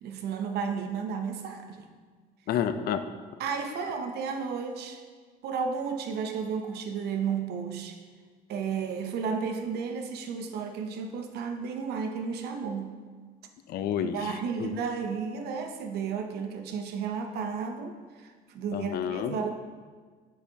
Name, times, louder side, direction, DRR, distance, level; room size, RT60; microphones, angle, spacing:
voice 1, 0.0-1.9 3.4-5.0 5.4-8.0 8.5-12.9 14.1-17.9 18.5-19.5, right 6 dB, 75° right, 6 dB, 0.7 m, -33 dB
voice 2, 2.5-3.1 13.7-14.7 18.7-19.4, left 8 dB, 65° left, 10 dB, 0.5 m, -30 dB
8.1 x 5.4 x 2.8 m, 1.5 s
cardioid pair, 110°, 17 cm